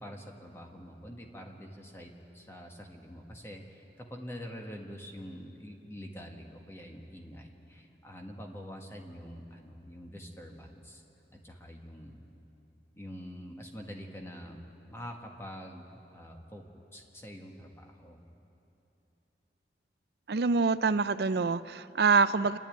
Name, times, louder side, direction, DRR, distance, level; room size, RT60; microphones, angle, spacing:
voice 1, 0.0-11.0 11.3-12.2 13.0-14.6 14.9-16.6 16.9-18.2, equal, 15° left, 1 dB, 1.6 m, -45 dB
voice 2, 20.3-22.6, right 4 dB, 65° right, 14 dB, 0.5 m, -25 dB
27.5 x 10.5 x 9.2 m, 3.0 s
head